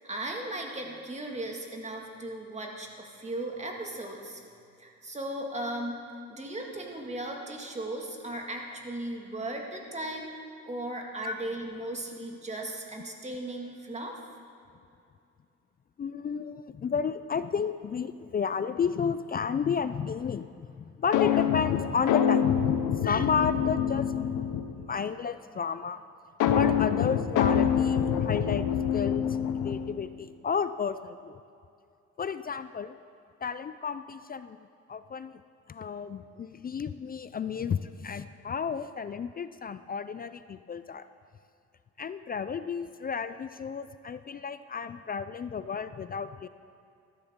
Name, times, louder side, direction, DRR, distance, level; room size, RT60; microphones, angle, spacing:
voice 1, 0.0-4.4 4.8-6.0 6.3-10.3 10.7-14.2, right 1 dB, 20° right, 1 dB, 2.0 m, -37 dB
voice 2, 16.0-22.5 23.0-24.3 24.8-26.0 26.5-28.6 28.9-31.4 32.2-33.0 33.4-34.6 34.9-35.4 35.7-41.1 42.0-46.5, left 6 dB, 30° left, 12 dB, 0.4 m, -32 dB
sound 1, 21.1-24.9 26.4-30.0, left 8 dB, 85° left, 0.8 m, -26 dB
13.5 x 13.0 x 3.7 m, 2.5 s
cardioid pair, 90°, 30 cm